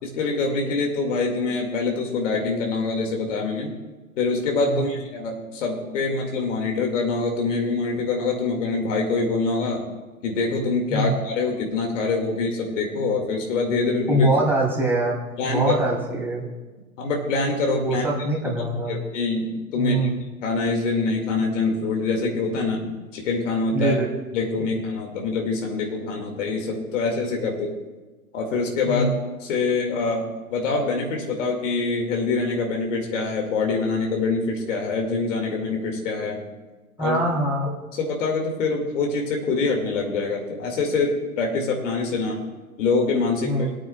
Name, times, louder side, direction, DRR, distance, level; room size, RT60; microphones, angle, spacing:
voice 1, 0.0-3.8 4.1-9.9 10.2-14.3 15.4-15.8 17.0-18.1 18.4-18.5 18.9-20.1 20.4-24.0 24.3-27.8 28.3-36.4 37.0-37.2 37.7-42.4 42.8-43.7, left 3 dB, 60° left, 1 dB, 2.3 m, -25 dB
voice 2, 14.1-15.2 15.4-16.4 17.8-18.9 19.8-20.1 23.7-24.1 28.9-29.1 37.0-37.7 43.4-43.7, right 2 dB, 5° right, -3 dB, 3.0 m, -23 dB
23.5 x 8.9 x 2.4 m, 1.3 s
hypercardioid pair, 110°, 43 cm